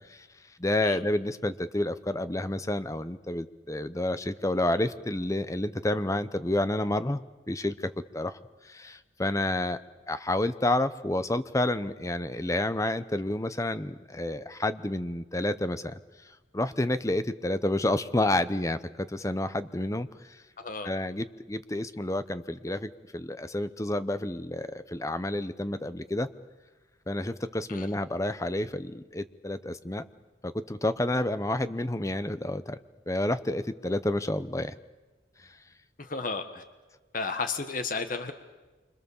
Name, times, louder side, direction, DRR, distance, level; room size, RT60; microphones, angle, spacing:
voice 1, 0.6-7.2 7.5-8.4 8.6-9.8 10.1-16.0 16.5-20.4 20.8-26.3 27.1-30.0 30.4-32.8 33.1-34.7, left 1 dB, 15° left, 12 dB, 0.8 m, -29 dB
voice 2, 20.6-20.9 27.7-27.9 36.0-36.6 37.1-38.3, left 4 dB, 45° left, 7 dB, 1.4 m, -33 dB
28.0 x 25.5 x 7.2 m, 1.2 s
head